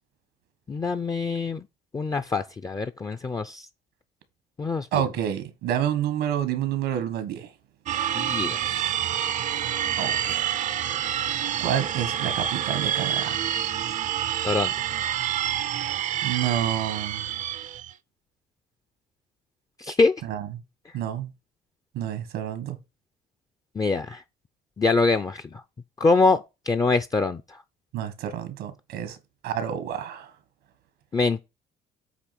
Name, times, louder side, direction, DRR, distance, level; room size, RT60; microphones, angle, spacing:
voice 1, 0.7-1.7 1.9-3.7 4.6-5.1 8.1-8.9 14.4-14.9 19.8-20.1 23.7-24.2 24.8-25.6 26.0-27.6 31.1-31.4, left 3 dB, 20° left, 0.5 m, -24 dB
voice 2, 4.9-7.5 10.0-10.5 11.6-13.4 16.2-17.3 20.2-20.5 20.9-21.3 21.9-22.8 27.9-29.2 29.4-30.3, right 10 dB, 90° right, 1.5 m, -29 dB
sound 1, 7.9-17.9, right 10 dB, 45° right, 0.5 m, -28 dB
8.2 x 2.9 x 5.9 m
cardioid pair, 110°, 17 cm